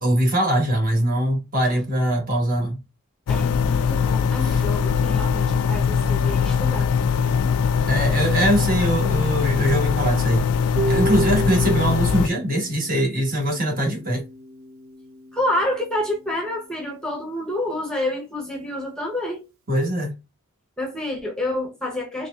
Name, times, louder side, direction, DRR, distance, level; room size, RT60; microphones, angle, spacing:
voice 1, 0.0-2.8 4.4-4.5 7.9-10.5 10.9-14.2 19.7-20.1, right 1 dB, 40° right, 1.2 m, -22 dB
sound 1, 3.3-12.3, left 6 dB, 80° left, 0.3 m, -21 dB
voice 2, 3.3-6.9 15.3-19.4 20.8-22.3, left 1 dB, 5° left, 0.8 m, -28 dB
Harp, 10.8-16.8, right 3 dB, 60° right, 0.7 m, -33 dB
4.0 x 3.1 x 2.3 m
head